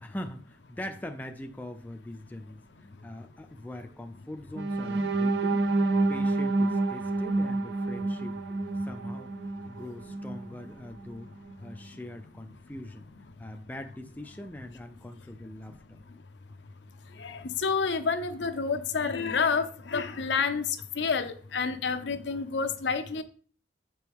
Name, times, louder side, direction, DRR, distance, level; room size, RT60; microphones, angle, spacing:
voice 1, 0.0-8.4 8.8-9.3 9.7-11.3 11.6-13.1 13.4-16.0, left 1 dB, 10° left, 4 dB, 0.3 m, -42 dB
sound 1, 4.5-10.5 11.0-11.1 11.5-11.7, right 2 dB, 70° right, 0.5 m, -28 dB
voice 2, 17.1-23.2, left 5 dB, 70° left, 9 dB, 0.6 m, -29 dB
6.8 x 4.6 x 3.5 m, 0.43 s
head